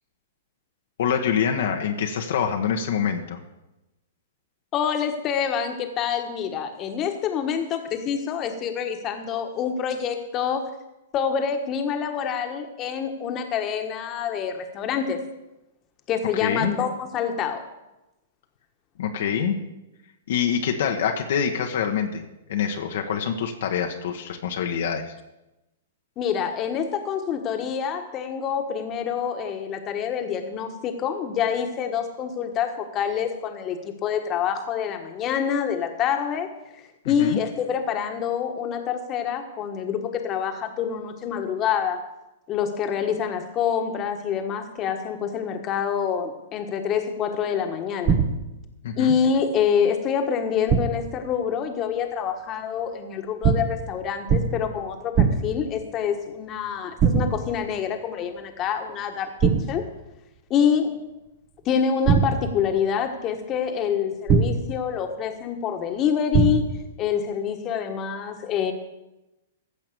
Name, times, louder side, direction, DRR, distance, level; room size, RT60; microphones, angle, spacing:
voice 1, 1.0-3.4 16.4-16.7 19.0-19.6 20.3-22.2 22.5-25.1 37.0-37.4 48.8-49.1, left 7 dB, 65° left, 3 dB, 1.3 m, -25 dB
voice 2, 4.7-10.6 11.1-15.2 16.1-17.6 26.2-36.5 37.0-42.0 42.5-48.2 49.0-59.9 60.5-61.0 61.6-66.6 67.0-68.7, left 7 dB, 30° left, 5 dB, 1.5 m, -26 dB
sound 1, 48.1-48.6 50.7-51.2 53.4-53.9 54.3-54.7 55.2-55.7 57.0-57.6 59.4-59.9 62.1-62.7 64.3-64.8 66.3-66.9, right 6 dB, 30° right, 1.2 m, -22 dB
15.0 x 5.8 x 7.0 m, 0.97 s
hypercardioid pair, 115°, 0 cm